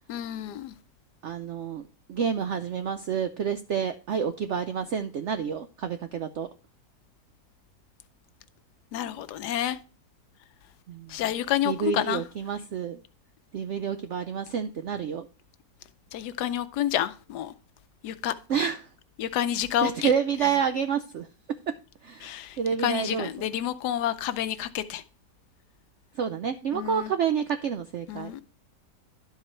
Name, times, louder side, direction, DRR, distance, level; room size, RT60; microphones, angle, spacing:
voice 1, 0.1-0.7 8.9-9.8 11.1-12.2 16.1-17.5 18.0-18.3 19.2-20.1 22.2-25.0 26.7-27.1 28.1-28.4, left 11 dB, 75° left, 1.2 m, -29 dB
voice 2, 1.2-1.8 2.1-6.5 10.9-11.1 11.6-13.0 13.5-15.3 18.5-18.8 19.8-21.3 22.0-23.5 26.2-28.3, right 7 dB, 75° right, 0.6 m, -29 dB
11.5 x 4.7 x 4.4 m
omnidirectional pair, 1.8 m